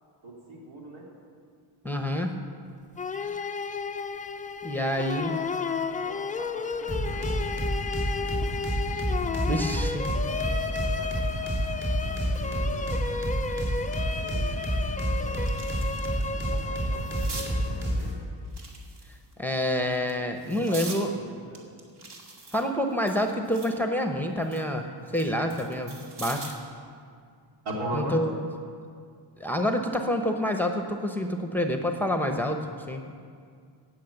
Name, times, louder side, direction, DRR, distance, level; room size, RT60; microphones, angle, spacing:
voice 1, 0.2-1.1 4.9-7.6 10.0-10.2 10.5-12.9 14.2-14.6 15.1-15.6 16.2-18.1 20.5-21.6 27.6-28.2, right 1 dB, 80° right, -2 dB, 3.2 m, -41 dB
voice 2, 1.8-2.4 4.6-5.3 9.5-10.1 19.4-21.1 22.5-24.9 25.1-26.5 27.9-28.3 29.4-33.0, equal, 5° left, 4 dB, 0.7 m, -27 dB
sound 1, 3.0-18.0, left 4 dB, 20° left, 0.3 m, -33 dB
sound 2, 6.9-18.2, equal, 25° right, 3.8 m, -29 dB
sound 3, 14.2-14.3 14.8-16.2 16.6-17.5 18.4-19.3 19.9-21.0 21.5-23.8 24.2-26.7 28.0-28.2, right 3 dB, 55° right, 2.2 m, -43 dB
17.5 x 6.4 x 7.9 m, 2.2 s
wide cardioid pair, 145°, 46 cm